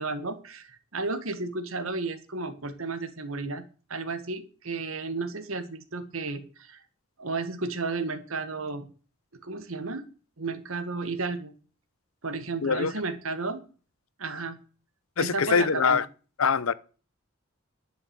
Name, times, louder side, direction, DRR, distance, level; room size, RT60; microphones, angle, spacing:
voice 1, 0.0-3.6 3.9-6.8 7.2-8.9 9.4-10.0 10.4-11.5 12.2-13.6 14.2-14.6 15.2-16.0, right 3 dB, 85° right, 1.8 m, -33 dB
voice 2, 12.6-12.9 15.2-16.1 16.4-16.7, left 5 dB, 85° left, 0.8 m, -23 dB
11.0 x 6.0 x 8.4 m
head